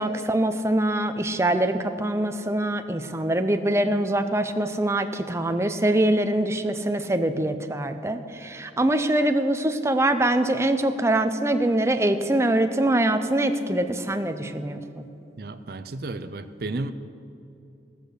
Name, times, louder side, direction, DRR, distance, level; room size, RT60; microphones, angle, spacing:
voice 1, 0.0-15.0, right 1 dB, 15° right, 8 dB, 0.6 m, -24 dB
voice 2, 15.4-16.9, right 2 dB, 55° right, 10 dB, 0.6 m, -33 dB
18.5 x 6.7 x 6.4 m, 2.7 s
head